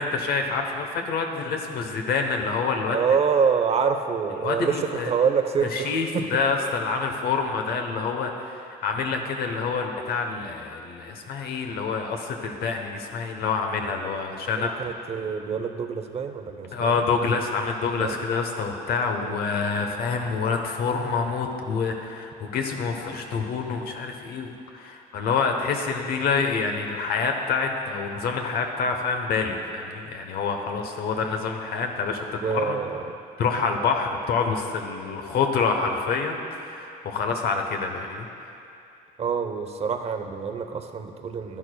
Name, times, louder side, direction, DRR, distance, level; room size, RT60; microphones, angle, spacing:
voice 1, 0.0-3.0 4.4-5.1 5.7-14.7 16.7-32.8 33.4-38.3, left 5 dB, 65° left, 4 dB, 0.9 m, -27 dB
voice 2, 2.9-6.3 14.5-16.9 18.0-18.2 19.2-19.5 32.4-33.1 39.2-41.6, right 6 dB, 40° right, 6 dB, 0.7 m, -26 dB
12.0 x 11.0 x 2.3 m, 2.6 s
cardioid pair, 110°, 17 cm